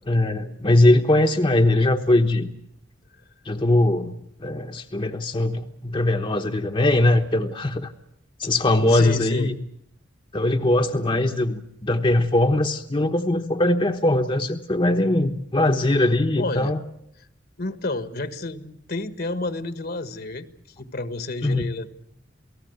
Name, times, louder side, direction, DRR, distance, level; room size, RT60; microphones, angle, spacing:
voice 1, 0.1-2.5 3.4-7.9 8.4-9.6 10.3-16.8 21.4-21.6, left 1 dB, 30° left, 4 dB, 1.1 m, -21 dB
voice 2, 8.8-9.5 16.4-16.7 17.6-20.5 20.8-21.9, left 2 dB, 55° left, 10 dB, 1.5 m, -30 dB
28.5 x 18.5 x 8.0 m, 0.75 s
head